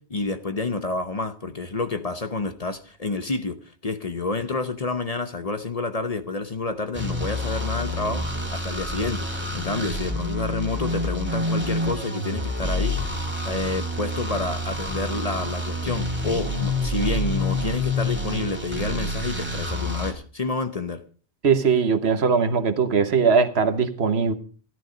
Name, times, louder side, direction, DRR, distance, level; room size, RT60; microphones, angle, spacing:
voice 1, 0.0-21.0, left 3 dB, 40° left, 0.9 m, -29 dB
sound 1, 6.9-20.1, left 1 dB, 10° right, 2.6 m, -28 dB
voice 2, 21.4-24.3, right 5 dB, 70° right, 1.3 m, -20 dB
14.0 x 11.0 x 5.1 m
omnidirectional pair, 1.1 m